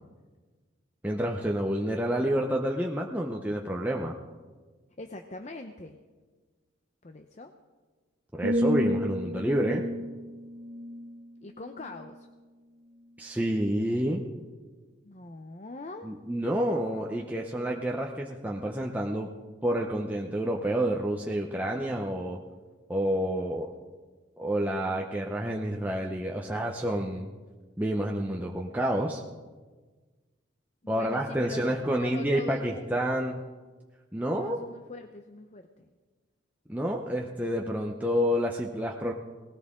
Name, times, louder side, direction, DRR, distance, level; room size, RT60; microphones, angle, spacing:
voice 1, 1.0-4.1 8.3-9.8 13.2-14.2 16.0-19.3 19.6-22.4 22.9-23.7 24.4-27.3 27.8-29.2 30.9-33.4 34.1-34.6 36.7-39.1, equal, 10° right, -1 dB, 0.7 m, -29 dB
voice 2, 5.0-6.0 7.0-7.5 11.4-12.3 15.0-16.1 30.9-33.2 34.3-35.9, left 2 dB, 35° left, 6 dB, 0.7 m, -43 dB
sound 1, 8.4-12.3 12.8-13.1, equal, 85° right, 1.5 m, -32 dB
19.0 x 17.0 x 3.7 m, 1.4 s
head